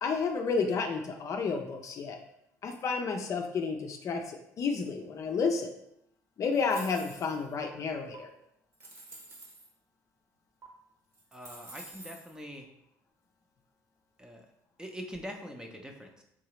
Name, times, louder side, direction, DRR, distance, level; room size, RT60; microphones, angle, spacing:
voice 1, 0.0-2.2 2.6-5.7 6.4-8.3, left 4 dB, 50° left, 3 dB, 0.5 m, -31 dB
sound 1, 6.5-7.5 8.1-8.2 8.7-9.7 10.6-10.7 11.1-12.3, right 2 dB, 40° right, 1.1 m, -49 dB
voice 2, 11.3-12.7 14.2-14.5 14.8-16.2, equal, 10° right, 2 dB, 0.7 m, -43 dB
3.7 x 2.8 x 3.1 m, 0.78 s
supercardioid pair, 75°, 7 cm